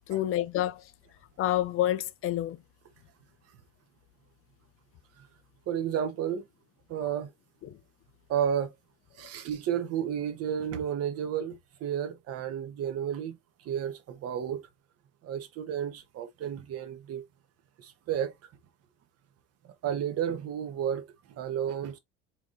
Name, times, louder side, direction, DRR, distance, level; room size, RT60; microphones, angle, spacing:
voice 1, 0.1-0.9 1.4-2.6 7.6-7.8 9.2-9.3, left 13 dB, 45° left, 0.5 m, -28 dB
voice 2, 5.7-6.5 6.9-7.3 8.3-8.7 9.2-14.7 15.2-17.2 17.8-18.3 19.6-22.0, right 9 dB, 50° right, 1.1 m, -32 dB
4.6 x 3.6 x 2.6 m
supercardioid pair, 90°, 30 cm